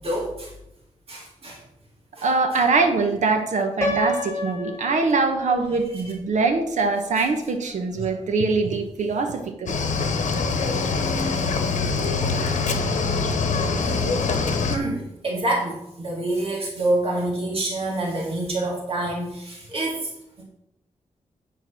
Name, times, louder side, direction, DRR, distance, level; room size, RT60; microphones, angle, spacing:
voice 1, 0.0-0.5 1.1-1.6 2.2-2.3 7.9-8.0 14.7-20.0 20.4-20.5, right 1 dB, 50° right, -2 dB, 2.2 m, -27 dB
voice 2, 2.2-9.7, right 4 dB, 75° right, 5 dB, 1.2 m, -23 dB
Piano, 3.8-5.8, left 1 dB, 20° left, 1.4 m, -29 dB
Cricket / Waves surf, 9.7-14.8, left 4 dB, 80° left, 1.1 m, -24 dB
9.4 x 4.1 x 6.0 m, 0.81 s
wide cardioid pair, 175°, 12 cm